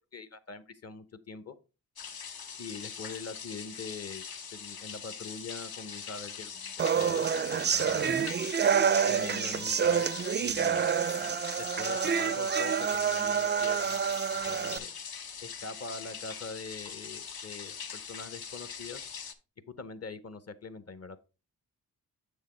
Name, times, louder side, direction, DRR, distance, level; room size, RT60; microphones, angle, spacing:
voice 1, 0.1-1.5 2.6-4.2 4.5-7.3 7.7-8.3 9.1-10.1 10.4-10.9 11.6-14.0 14.4-14.9 15.4-19.0 19.8-21.2, left 4 dB, 40° left, 13 dB, 0.9 m, -43 dB
sound 1, 2.0-19.3, left 6 dB, 65° left, 1.0 m, -42 dB
sound 2, 6.8-14.8, right 7 dB, 30° right, 0.3 m, -28 dB
7.1 x 6.6 x 3.1 m, 0.31 s
cardioid pair, 60°, 38 cm